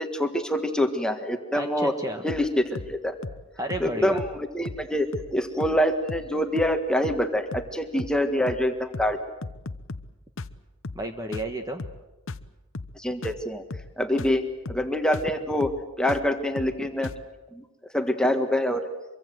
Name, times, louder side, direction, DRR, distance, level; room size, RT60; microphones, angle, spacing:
voice 1, 0.0-1.9 2.2-3.2 3.8-9.2 12.9-13.6 14.0-15.7 16.0-17.1 17.5-17.6 17.9-18.9, left 1 dB, 5° left, 6 dB, 1.6 m, -25 dB
voice 2, 1.5-2.2 3.6-4.2 10.9-11.8, right 1 dB, 15° right, 5 dB, 1.3 m, -32 dB
sound 1, 2.3-2.5 2.8-3.0 3.2-3.4 3.7-3.9 4.2-4.4 4.7-4.9 5.1-5.3 5.6-5.8 6.1-6.3 6.6-6.8 7.0-7.3 7.5-7.7 8.0-8.2 8.5-8.7 8.9-9.2 9.4-10.1 10.4-10.6 10.8-11.1 11.3-11.5 11.8-12.0 12.3-12.5 12.7-13.0 13.2-13.4 13.7-13.9 14.2-14.4 14.7-14.9 15.1-15.3 15.6-15.8 16.1-16.3 16.6-16.8 17.0-17.3, left 3 dB, 60° left, 0.8 m, -37 dB
24.5 x 23.5 x 7.8 m, 1.1 s
head